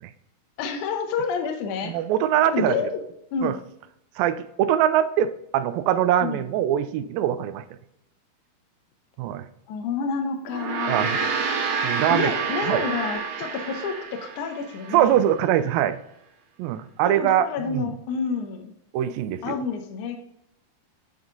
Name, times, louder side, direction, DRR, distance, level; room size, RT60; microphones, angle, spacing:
voice 1, 0.6-1.9 2.5-3.0 3.3-3.5 6.2-6.5 9.7-11.4 12.1-15.2 17.0-18.7 19.4-20.2, left 5 dB, 70° left, 4 dB, 2.1 m, -29 dB
voice 2, 1.9-2.8 3.4-3.5 4.2-7.6 9.2-9.5 10.9-11.2 11.8-12.3 12.7-12.8 14.9-16.0 16.6-17.9 18.9-19.6, right 11 dB, 85° right, 12 dB, 2.3 m, -23 dB
Gong, 10.4-15.1, right 5 dB, 65° right, 1.9 m, -28 dB
9.4 x 3.6 x 3.7 m, 0.80 s
omnidirectional pair, 4.1 m